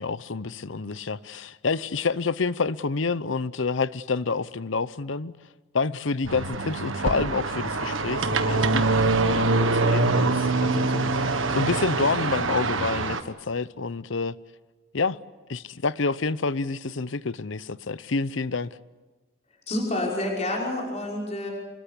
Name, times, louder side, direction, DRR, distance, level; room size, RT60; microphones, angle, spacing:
voice 1, 0.0-5.3 5.7-14.4 14.9-15.2 15.5-18.8, left 4 dB, 75° left, 0.8 m, -28 dB
sound 1, 6.3-13.2, right 3 dB, 80° right, 1.6 m, -24 dB
voice 2, 19.7-21.5, left 1 dB, 35° left, 5.7 m, -28 dB
26.5 x 21.5 x 8.4 m
head